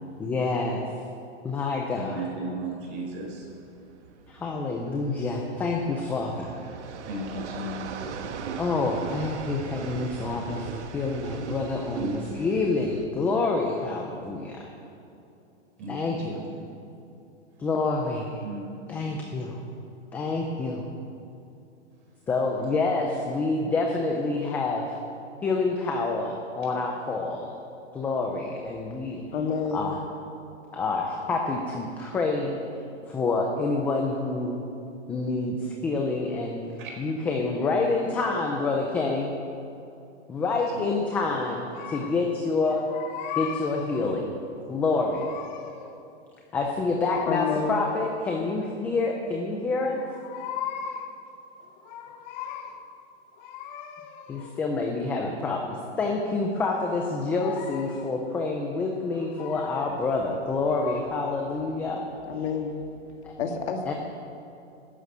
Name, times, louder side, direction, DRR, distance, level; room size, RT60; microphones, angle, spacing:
voice 1, 0.2-0.8 1.4-2.2 4.3-6.5 8.6-14.7 15.9-16.4 17.6-18.4 18.9-19.6 20.1-20.8 22.3-25.0 25.4-27.6 27.9-29.2 29.7-30.0 30.7-32.6 33.1-34.6 35.1-36.6 37.0-39.3 40.3-42.9 43.3-44.3 44.7-45.3 46.5-50.0 54.3-62.1 63.2-63.3 63.9-64.0, left 3 dB, 5° left, 1 dB, 0.4 m, -27 dB
voice 2, 1.9-3.5 7.1-8.1 12.0-12.1 15.8-16.6 18.4-18.6 18.9-19.1 32.4-32.5 36.8-36.9 40.7-40.9 41.3-41.4, right 1 dB, 35° right, -1 dB, 4.5 m, -36 dB
sound 1, 2.2-13.1, right 5 dB, 70° right, 1.5 m, -38 dB
voice 3, 29.3-29.9 47.3-47.8 62.3-62.8 63.1-63.9, left 5 dB, 65° left, 4 dB, 2.2 m, -29 dB
sound 2, 41.7-42.3 42.6-44.3 44.9-46.0 47.0-48.4 49.9-51.2 51.7-52.9 53.4-54.7 56.5-58.2 58.9-60.1 60.6-61.0, left 8 dB, 40° left, 1.2 m, -38 dB
12.5 x 11.0 x 8.9 m, 2.7 s
hypercardioid pair, 150°, 35 cm